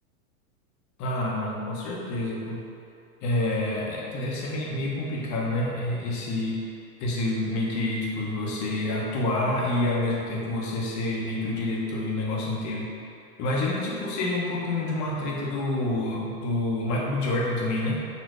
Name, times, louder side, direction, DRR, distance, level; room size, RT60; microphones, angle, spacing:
voice 1, 1.0-2.6 3.2-6.6 7.0-12.9 13.4-17.9, left 2 dB, 40° left, -3 dB, 1.4 m, -28 dB
6.8 x 3.3 x 4.7 m, 2.5 s
hypercardioid pair, 125°, 44 cm